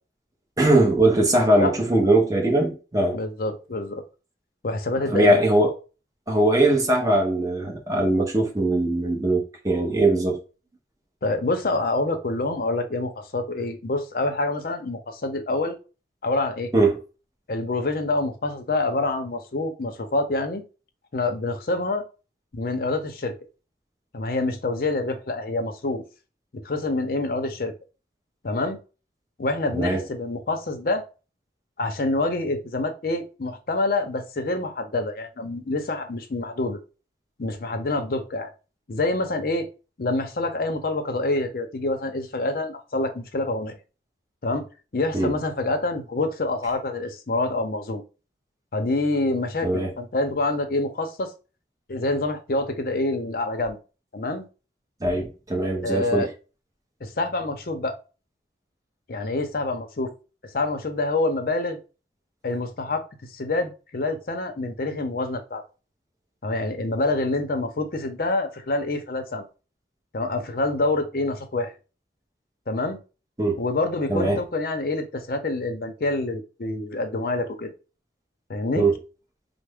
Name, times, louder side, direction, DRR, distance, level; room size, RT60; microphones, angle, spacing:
voice 1, 0.6-3.2 5.1-5.7 6.3-10.4 16.7-17.0 29.7-30.0 45.1-45.3 49.6-49.9 55.0-56.3 73.4-73.6 74.1-74.4 78.7-79.0, right 1 dB, 20° right, 0.8 m, -21 dB
voice 2, 3.1-4.0 4.6-5.4 11.2-15.8 16.2-16.7 17.5-20.6 21.1-22.1 22.5-23.3 24.1-26.0 26.6-27.7 28.4-28.8 29.4-31.0 31.8-36.8 37.4-38.5 38.9-39.7 40.0-43.8 44.4-44.7 44.9-48.0 48.7-51.3 51.9-53.8 54.1-54.5 55.8-56.3 57.0-58.0 59.1-60.1 60.5-61.8 62.4-63.0 63.3-65.6 66.4-69.5 70.1-71.7 72.7-73.0 73.6-77.7 78.5-78.9, left 2 dB, 55° left, 0.6 m, -26 dB
3.3 x 2.0 x 3.4 m
head